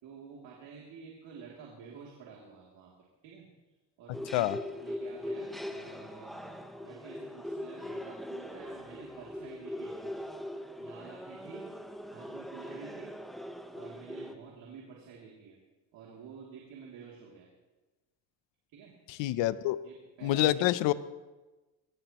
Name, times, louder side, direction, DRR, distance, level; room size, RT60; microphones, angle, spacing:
voice 1, 0.0-2.9 3.2-3.5 4.0-10.2 10.8-11.6 12.1-13.2 13.7-15.6 15.9-17.5 18.7-18.9 19.8-20.6, right 6 dB, 85° right, -3 dB, 3.0 m, -50 dB
sound 1, 4.1-14.3, left 1 dB, ahead, 1.0 m, -41 dB
voice 2, 19.2-19.8 20.2-20.9, left 15 dB, 85° left, 15 dB, 0.7 m, -26 dB
22.5 x 18.0 x 3.0 m, 1.2 s
cardioid pair, 110°, 43 cm